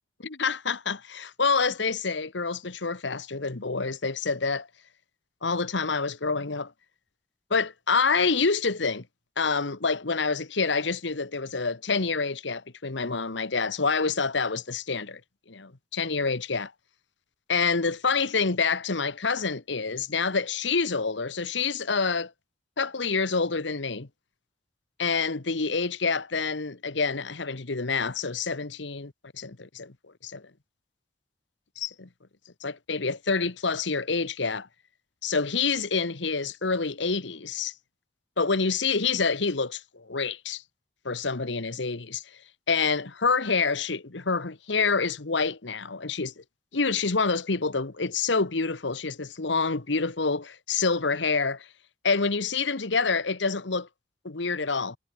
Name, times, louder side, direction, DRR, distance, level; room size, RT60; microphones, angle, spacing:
voice 1, 0.2-4.7 5.4-6.7 7.5-9.1 9.4-15.2 15.5-16.7 17.5-22.3 22.8-24.1 25.0-29.9 30.2-30.4 31.8-32.1 32.6-34.7 35.2-37.7 38.4-40.6 41.0-42.4 42.7-46.4 46.7-51.7 52.0-53.9 54.2-55.0, left 4 dB, 75° left, 1.3 m, -27 dB
head